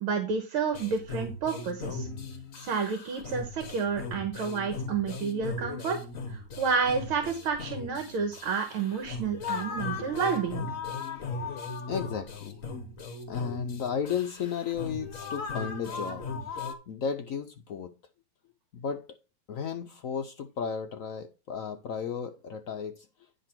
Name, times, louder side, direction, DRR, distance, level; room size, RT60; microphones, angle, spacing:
voice 1, 0.0-2.1 2.6-6.0 6.3-10.7, right 5 dB, 75° right, 2.1 m, -30 dB
sound 1, 0.7-16.7, left 4 dB, 45° left, 1.5 m, -38 dB
voice 2, 10.0-10.3 11.2-11.6 11.9-12.6 13.3-17.9 18.7-19.1 19.5-23.1, left 7 dB, 80° left, 0.7 m, -34 dB
10.0 x 3.9 x 5.9 m
omnidirectional pair, 2.3 m